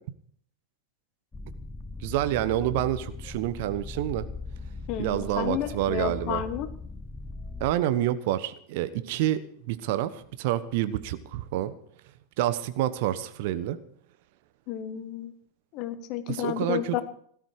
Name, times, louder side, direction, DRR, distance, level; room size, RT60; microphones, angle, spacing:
sound 1, 1.3-7.7, left 4 dB, 15° left, 0.8 m, -39 dB
voice 1, 2.0-4.3 5.0-6.4 7.6-9.4 9.7-11.7 12.4-13.8 16.3-17.0, right 13 dB, 50° right, 13 dB, 1.1 m, -28 dB
voice 2, 4.9-6.7 14.7-15.3 15.7-17.0, left 11 dB, 40° left, 11 dB, 1.5 m, -31 dB
17.5 x 13.0 x 4.9 m, 0.62 s
figure-of-eight pair, 90°, 0 cm